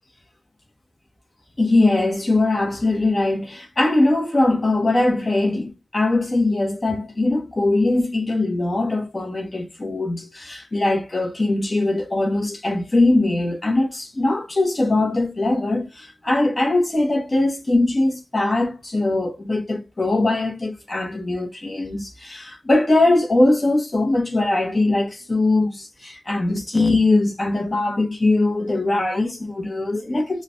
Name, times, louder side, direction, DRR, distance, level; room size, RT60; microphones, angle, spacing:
voice 1, 1.6-30.4, left 2 dB, 35° left, 0.8 m, -21 dB
3.1 x 2.1 x 2.5 m
wide cardioid pair, 115°, 0 cm